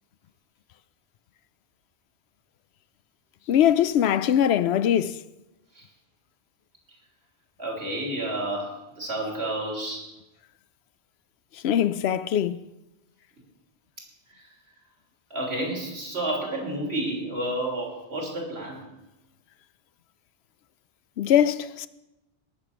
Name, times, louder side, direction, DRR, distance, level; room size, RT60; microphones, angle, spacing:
voice 1, 3.5-5.2 11.6-12.6 21.2-21.9, left 10 dB, 80° left, 0.9 m, -22 dB
voice 2, 7.6-10.1 15.3-18.8, right 1 dB, 85° right, 3.5 m, -30 dB
18.5 x 6.9 x 5.9 m
omnidirectional pair, 1.1 m